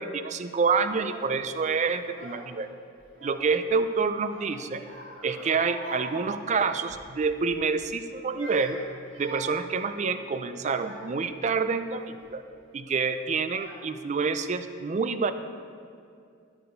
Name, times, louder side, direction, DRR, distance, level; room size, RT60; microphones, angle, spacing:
voice 1, 0.0-2.7 3.2-4.8 5.2-8.8 9.2-12.4 12.7-15.3, right 5 dB, 35° right, 10 dB, 0.4 m, -27 dB
Child speech kid speaking / Crying sobbing, 0.8-1.4 2.0-2.7 3.0-3.8 4.3-7.1 7.4-7.7 8.2-11.3 12.0-12.3 13.1-13.2 13.5-14.2, right 2 dB, 75° right, 1.8 m, -45 dB
12.0 x 4.5 x 5.2 m, 2.3 s
head